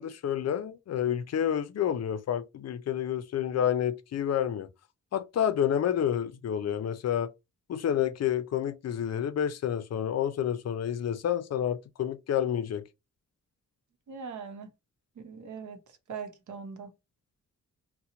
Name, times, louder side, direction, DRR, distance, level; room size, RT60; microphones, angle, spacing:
voice 1, 0.0-4.7 5.1-7.3 7.7-12.8, left 9 dB, 60° left, 0.4 m, -29 dB
voice 2, 14.1-14.7 15.2-15.8 16.1-16.9, right 5 dB, 80° right, 0.8 m, -40 dB
2.9 x 2.1 x 3.7 m
wide cardioid pair, 175°, 30 cm